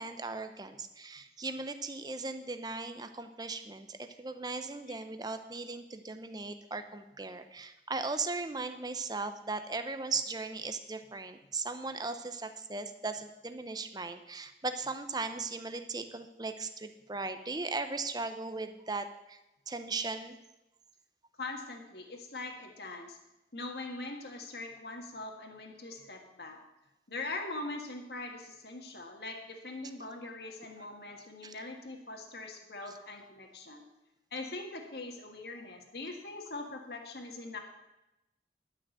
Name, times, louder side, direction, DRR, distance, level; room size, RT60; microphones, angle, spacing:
voice 1, 0.0-19.4 19.7-20.4 31.4-31.5, right 3 dB, 25° right, 8 dB, 0.7 m, -38 dB
voice 2, 21.4-23.2 23.5-26.6 27.1-33.8 34.3-37.6, left 2 dB, 65° left, 2 dB, 1.6 m, -42 dB
11.5 x 6.2 x 7.8 m, 0.94 s
head